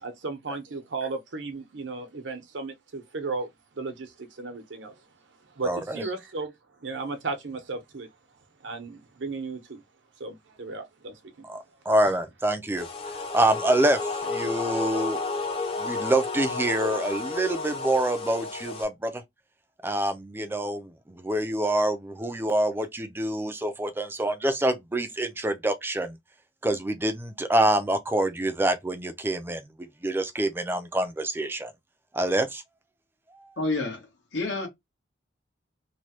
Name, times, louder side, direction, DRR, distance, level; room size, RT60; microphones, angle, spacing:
voice 1, 0.0-3.5 3.7-4.9 5.6-6.5 6.8-8.1 8.6-9.8 10.2-11.2, right 3 dB, 85° right, 0.8 m, -35 dB
voice 2, 5.6-6.1 11.4-15.2 15.8-19.2 19.8-26.2 26.6-29.7 30.0-31.7 32.1-32.6, right 1 dB, 10° right, 0.4 m, -26 dB
sound 1, 12.8-18.8, left 3 dB, 30° left, 0.6 m, -32 dB
voice 3, 33.6-34.0 34.3-34.7, left 2 dB, 80° left, 1.2 m, -28 dB
3.1 x 2.2 x 2.8 m
head